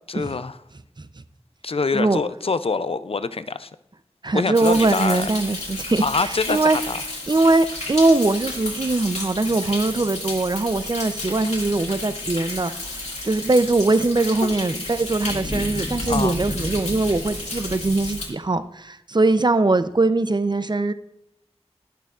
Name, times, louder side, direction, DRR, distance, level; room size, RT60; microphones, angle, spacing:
voice 1, 0.1-0.6 1.6-3.7 4.3-5.3 6.0-7.0 14.4-14.5 16.1-16.4, left 4 dB, 60° left, 14 dB, 0.4 m, -25 dB
voice 2, 4.2-6.0 6.5-6.8 7.3-12.7 13.2-20.9, right 2 dB, 40° right, 12 dB, 0.5 m, -21 dB
Thunder, 4.5-18.3, left 2 dB, 90° left, 2.1 m, -31 dB
20.0 x 6.8 x 2.4 m, 0.86 s
wide cardioid pair, 45°, 11 cm